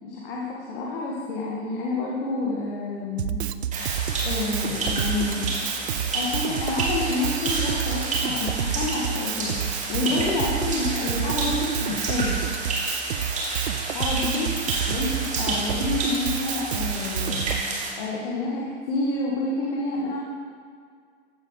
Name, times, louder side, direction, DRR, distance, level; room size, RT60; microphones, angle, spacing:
voice 1, 0.0-3.4 4.2-5.5 6.1-9.6 9.9-12.4 13.9-14.6 14.9-20.2, left 3 dB, 55° left, -4 dB, 2.0 m, -28 dB
Drum kit, 3.2-17.6, right 10 dB, 65° right, 0.6 m, -29 dB
sound 1, 3.7-17.9, right 2 dB, 20° right, 2.5 m, -30 dB
15.0 x 11.5 x 3.4 m, 2.1 s
figure-of-eight pair, 90°, 35 cm